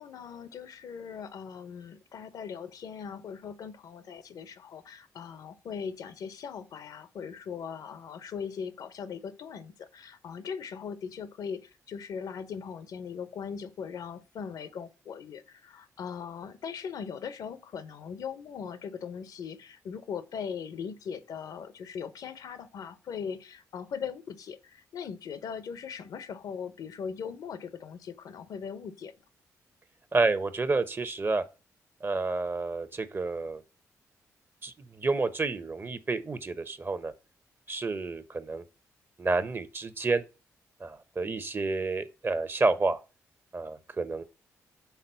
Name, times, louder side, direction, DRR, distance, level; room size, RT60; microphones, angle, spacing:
voice 1, 0.0-29.1, left 6 dB, 75° left, 0.9 m, -39 dB
voice 2, 30.1-31.4 32.0-33.6 34.6-37.1 37.7-38.6 39.2-40.2 40.8-43.0 43.5-44.2, right 3 dB, 35° right, 1.0 m, -29 dB
5.8 x 3.8 x 5.6 m
supercardioid pair, 55°, 7 cm